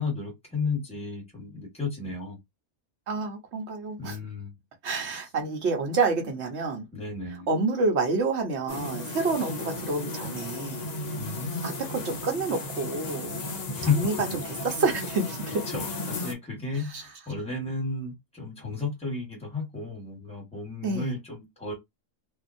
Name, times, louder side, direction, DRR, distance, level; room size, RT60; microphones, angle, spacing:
voice 1, 0.0-2.4 4.0-4.5 6.9-7.5 11.1-11.6 13.7-14.0 15.7-21.7, left 4 dB, 5° left, 1.2 m, -32 dB
voice 2, 3.1-4.2 4.8-6.9 7.5-10.9 11.6-13.4 13.8-14.1 14.4-15.7 16.9-17.0 20.8-21.1, right 3 dB, 55° right, 1.1 m, -28 dB
sound 1, 8.7-16.3, left 2 dB, 55° left, 0.4 m, -35 dB
2.7 x 2.4 x 2.5 m
omnidirectional pair, 1.5 m